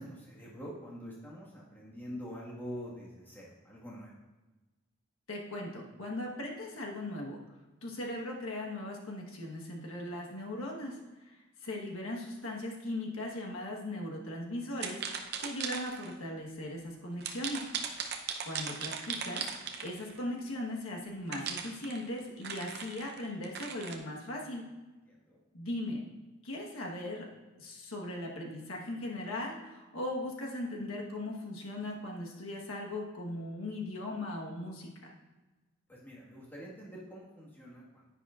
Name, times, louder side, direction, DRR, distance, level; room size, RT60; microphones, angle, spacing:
voice 1, 0.0-4.1 25.1-25.4 35.9-38.0, equal, 10° left, -6 dB, 1.6 m, -45 dB
voice 2, 5.3-7.4 7.8-11.4 11.6-17.7 18.4-19.5 19.8-24.7 25.5-26.0 26.4-27.3 27.6-35.1, left 1 dB, 80° left, -1 dB, 1.3 m, -39 dB
sound 1, 14.8-16.1 17.2-20.2 21.3-24.0, right 6 dB, 50° right, 0.7 m, -38 dB
10.0 x 10.0 x 2.5 m, 1.2 s
head